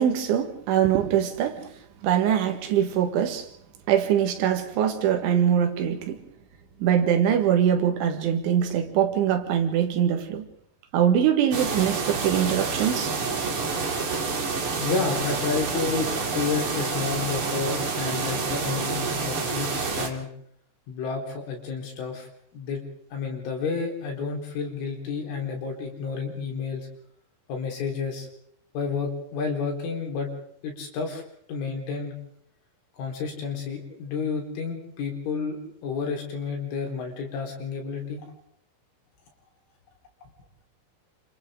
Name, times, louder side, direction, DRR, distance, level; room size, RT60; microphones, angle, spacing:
voice 1, 0.0-1.6 2.0-3.5 3.9-6.2 6.8-10.5 10.9-13.5, right 9 dB, 75° right, 4.1 m, -23 dB
sound 1, 11.5-20.1, right 4 dB, 40° right, 2.1 m, -28 dB
voice 2, 14.8-20.3 20.9-22.3 22.5-22.8 23.1-26.9 27.5-28.3 28.7-30.3 30.6-31.2 31.5-32.1 33.0-38.3 40.2-40.3, left 5 dB, 75° left, 6.7 m, -30 dB
28.5 x 27.0 x 3.8 m
omnidirectional pair, 5.6 m